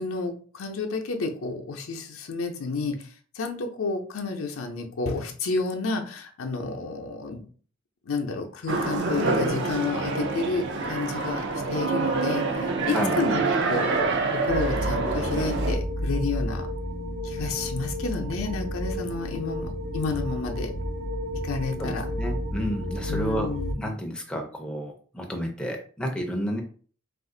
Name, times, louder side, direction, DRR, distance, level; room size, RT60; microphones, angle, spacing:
voice 1, 0.0-3.0 3.4-7.4 8.1-11.4 11.7-12.4 12.9-13.4 13.7-16.7 17.2-20.7 21.4-22.0 23.1-23.7, left 3 dB, 80° left, 3 dB, 0.6 m, -30 dB
sound 1, 8.7-15.7, right 3 dB, 55° right, 0.5 m, -26 dB
sound 2, 14.5-23.7, equal, 80° right, 0.8 m, -31 dB
voice 2, 21.8-23.5 23.8-26.6, equal, 5° left, 1 dB, 0.4 m, -31 dB
2.5 x 2.4 x 3.7 m, 0.43 s
head